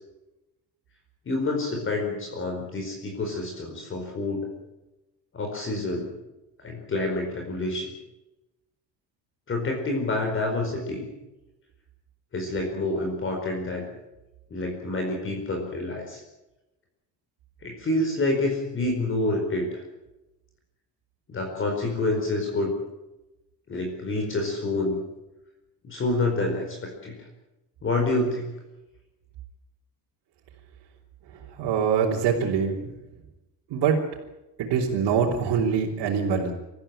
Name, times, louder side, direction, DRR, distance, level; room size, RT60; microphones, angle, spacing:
voice 1, 1.3-4.6 5.3-6.1 6.6-7.9 9.5-11.1 12.3-13.9 14.5-16.2 17.6-19.8 21.3-22.7 23.7-25.0 25.8-27.2 27.8-28.5, left 2 dB, 30° left, 2 dB, 4.8 m, -28 dB
voice 2, 31.6-32.9 33.7-34.0 34.6-36.5, right 6 dB, 70° right, -3 dB, 4.1 m, -24 dB
26.5 x 14.5 x 9.0 m, 0.99 s
cardioid pair, 165°, 42 cm